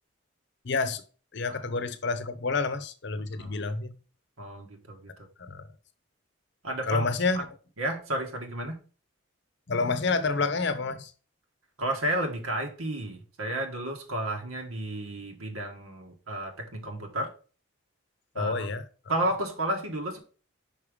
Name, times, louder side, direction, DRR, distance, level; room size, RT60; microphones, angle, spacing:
voice 1, 0.6-1.0 1.3-4.0 5.4-5.7 6.9-7.5 9.7-11.1 18.3-18.8, left 3 dB, 55° left, 0.7 m, -29 dB
voice 2, 4.4-5.1 6.6-7.0 7.8-8.8 11.8-17.3 18.3-18.7 19.1-20.2, right 1 dB, 85° right, 1.5 m, -32 dB
5.5 x 5.0 x 5.0 m
head